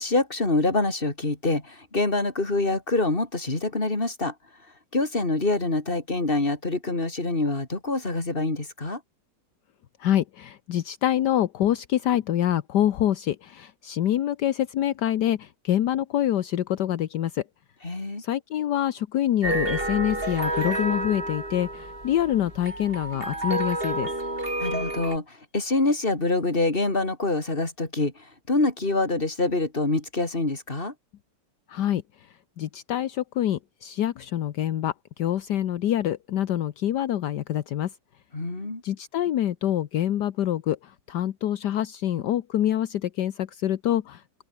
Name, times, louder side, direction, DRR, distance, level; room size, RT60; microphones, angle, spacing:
voice 1, 0.0-4.3 4.9-9.0 17.8-18.2 24.6-28.1 28.5-30.9 38.3-38.8, left 2 dB, 30° left, 3.8 m, -25 dB
voice 2, 10.0-17.4 18.2-24.1 31.7-32.0 32.6-37.9 38.8-44.2, left 11 dB, 70° left, 1.5 m, -26 dB
sound 1, 19.4-25.2, right 1 dB, 30° right, 5.8 m, -30 dB
open air
omnidirectional pair, 2.0 m